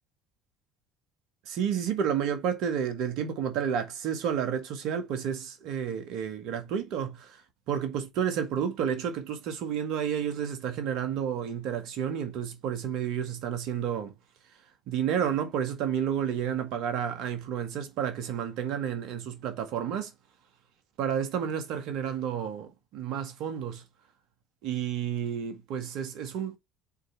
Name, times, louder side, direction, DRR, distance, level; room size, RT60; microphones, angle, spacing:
voice 1, 1.5-14.1 14.9-20.1 21.0-23.8 24.6-26.6, right 8 dB, 60° right, 1.8 m, -31 dB
5.8 x 4.7 x 4.2 m
hypercardioid pair, 65°, 0 cm